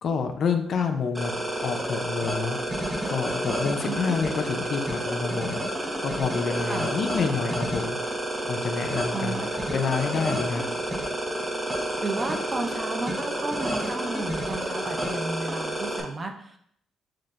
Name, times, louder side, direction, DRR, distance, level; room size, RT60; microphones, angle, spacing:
voice 1, 0.0-1.3 1.6-2.6 3.1-5.6 6.0-8.0 8.5-9.4 9.7-10.6, left 5 dB, 60° left, 5 dB, 0.5 m, -28 dB
sound 1, 1.0-3.2 4.1-4.5 4.8-5.0 5.3-5.8 6.0-6.1 6.3-6.6 7.2-7.4 8.0-8.2 8.7-9.7 10.1-10.3 10.9-11.2, right 4 dB, 75° right, 0.8 m, -49 dB
sound 2, 1.1-16.0, right 1 dB, 10° right, 0.9 m, -30 dB
voice 2, 9.1-9.5 12.0-16.6, right 3 dB, 35° right, 5 dB, 0.7 m, -33 dB
7.5 x 2.6 x 2.5 m, 0.67 s
cardioid pair, 90°, 0 cm